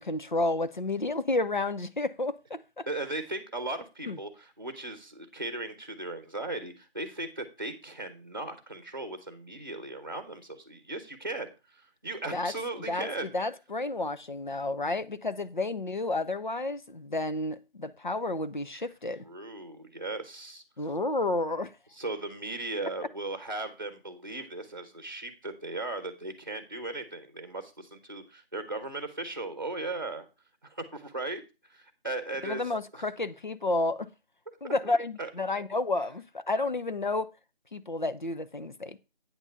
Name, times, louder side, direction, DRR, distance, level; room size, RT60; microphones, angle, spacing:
voice 1, 0.0-2.9 4.1-4.2 12.3-12.5 12.9-19.2 20.8-21.7 32.4-34.1 34.6-37.3 37.7-39.0, left 2 dB, 50° left, 0.8 m, -31 dB
voice 2, 2.9-13.3 18.7-18.9 19.2-20.6 21.9-30.3 30.6-31.4 31.7-32.6 32.9-33.0 34.6-34.9 35.2-35.3, right 2 dB, 20° right, 1.0 m, -37 dB
8.8 x 4.0 x 6.9 m
figure-of-eight pair, 175°, 30 cm